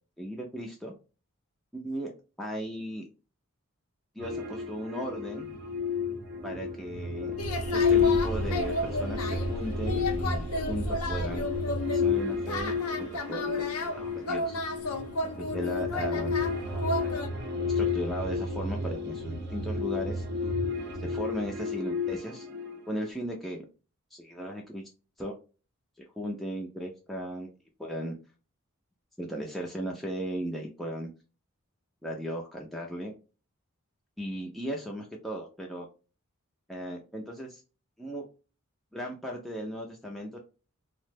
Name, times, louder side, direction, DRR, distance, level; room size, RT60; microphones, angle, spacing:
voice 1, 0.2-0.9 1.7-2.1 2.4-3.1 4.2-5.5 6.4-7.3 7.7-11.5 11.9-14.6 15.2-16.3 16.7-20.2 21.0-22.5 22.9-23.7 24.1-24.8 25.2-25.3 26.2-27.5 27.8-28.1 29.2-31.1 32.0-33.1 34.2-35.9 36.7-37.6 38.0-38.2 38.9-40.4, equal, ahead, -2 dB, 0.4 m, -37 dB
sound 1, 4.2-23.1, left 4 dB, 50° right, 0.6 m, -31 dB
sound 2, 7.4-17.3, left 1 dB, 85° left, 0.6 m, -33 dB
2.9 x 2.1 x 3.2 m, 0.33 s
head